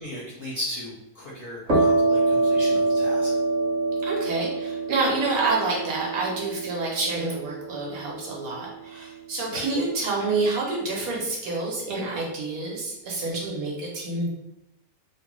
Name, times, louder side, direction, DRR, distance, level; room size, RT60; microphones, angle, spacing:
voice 1, 0.0-3.3, left 1 dB, 60° left, -5 dB, 0.5 m, -36 dB
sound 1, 1.7-9.1, right 2 dB, 55° right, 1.0 m, -26 dB
voice 2, 4.0-14.3, right 3 dB, 70° right, -3 dB, 1.3 m, -28 dB
3.1 x 2.2 x 3.0 m, 0.88 s
omnidirectional pair, 1.6 m